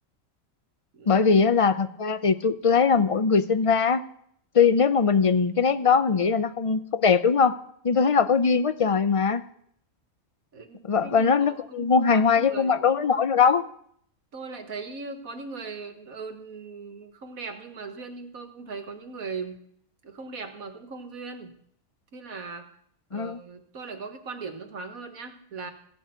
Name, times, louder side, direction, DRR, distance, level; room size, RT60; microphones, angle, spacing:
voice 1, 1.1-4.0 4.5-7.6 7.8-9.4 10.8-13.6 23.1-23.4, left 5 dB, 50° left, 12 dB, 0.4 m, -21 dB
voice 2, 10.5-12.7 14.3-19.6 20.0-21.6 22.1-22.7 23.1-25.7, right 4 dB, 80° right, 6 dB, 1.9 m, -39 dB
16.5 x 6.5 x 8.9 m, 0.67 s
omnidirectional pair, 1.5 m